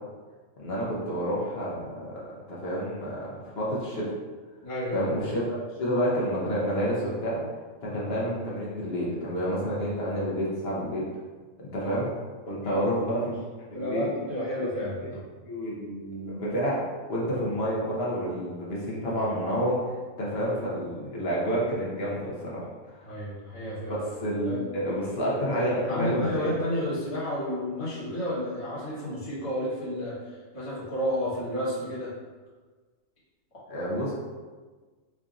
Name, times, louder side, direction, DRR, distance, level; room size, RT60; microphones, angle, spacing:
voice 1, 0.6-4.1 4.9-7.4 7.8-11.0 11.6-12.1 12.4-13.4 13.7-14.1 14.7-14.8 15.4-16.8 17.1-23.1 23.9-26.6 33.7-34.1, equal, 55° left, -6 dB, 0.9 m, -29 dB
voice 2, 4.6-5.1 7.8-8.0 11.8-12.0 12.6-13.0 13.7-15.2 23.0-23.9 24.4-24.6 25.9-30.1 30.5-32.1, equal, 25° left, -10 dB, 1.3 m, -31 dB
4.6 x 2.6 x 2.4 m, 1.4 s
omnidirectional pair, 1.4 m